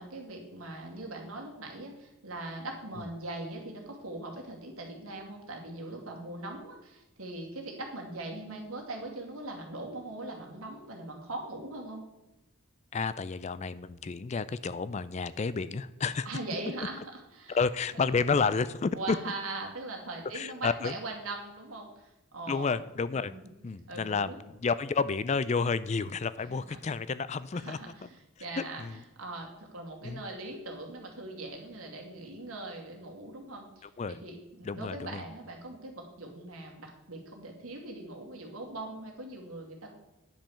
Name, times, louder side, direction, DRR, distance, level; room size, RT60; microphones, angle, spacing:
voice 1, 0.0-12.0 16.2-17.0 17.3-17.6 17.9-18.0 18.9-22.8 23.1-23.5 23.9-24.4 26.5-26.8 27.5-39.9, right 2 dB, 85° right, 0 dB, 2.4 m, -41 dB
voice 2, 12.9-16.4 17.0-17.1 17.5-19.2 20.3-21.0 22.5-23.3 23.6-28.1 28.4-29.0 30.0-30.2 33.8-34.2 34.6-35.3, left 5 dB, 30° left, 15 dB, 0.3 m, -31 dB
10.5 x 5.3 x 7.0 m, 1.0 s
head